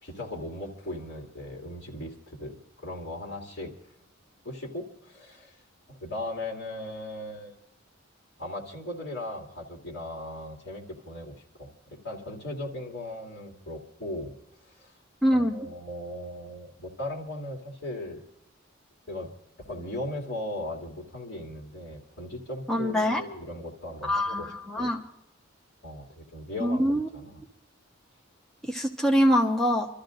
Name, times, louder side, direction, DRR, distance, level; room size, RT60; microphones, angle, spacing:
voice 1, 0.0-3.7 4.4-5.6 5.9-7.5 8.4-11.7 12.0-14.3 14.6-14.9 15.3-18.2 19.1-19.3 19.6-25.0 25.8-27.4, left 1 dB, 60° left, -1 dB, 2.7 m, -38 dB
voice 2, 15.2-15.6 22.7-23.2 24.0-25.0 26.6-27.1 28.7-29.9, equal, ahead, -1 dB, 1.0 m, -24 dB
29.5 x 13.5 x 2.6 m, 0.85 s
head